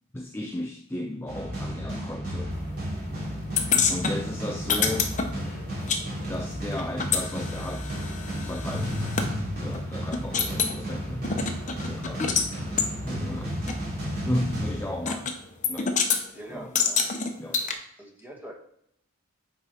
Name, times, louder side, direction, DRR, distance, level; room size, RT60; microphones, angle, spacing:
voice 1, 0.1-2.5 3.9-5.1 6.1-8.0 8.4-11.5 11.8-12.3 13.0-13.8 14.2-15.3 15.7-15.9 16.5-16.7 17.4-17.6, left 1 dB, 10° left, 4 dB, 0.4 m, -34 dB
sound 1, 1.3-15.5, equal, 45° right, 3.0 m, -33 dB
sound 2, 3.6-6.0 6.3-9.3 9.7-9.8 10.1-10.8 11.2-12.5 12.8-12.9 13.7-13.8 15.1-15.4 15.6-16.2 16.7-17.7, left 6 dB, 35° left, 0.8 m, -27 dB
voice 2, 16.3-17.0 18.0-18.5, right 1 dB, 10° right, -1 dB, 1.5 m, -44 dB
8.2 x 4.6 x 4.6 m, 0.71 s
head